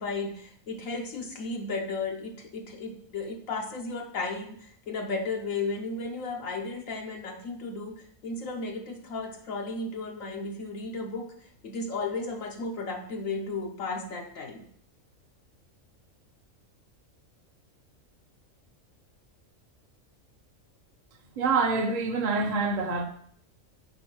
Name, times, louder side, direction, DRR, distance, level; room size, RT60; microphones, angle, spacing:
voice 1, 0.0-14.7, left 3 dB, 75° left, 1.2 m, -34 dB
voice 2, 21.4-23.1, right 4 dB, 35° right, 0.8 m, -26 dB
7.9 x 4.1 x 6.0 m
omnidirectional pair, 1.4 m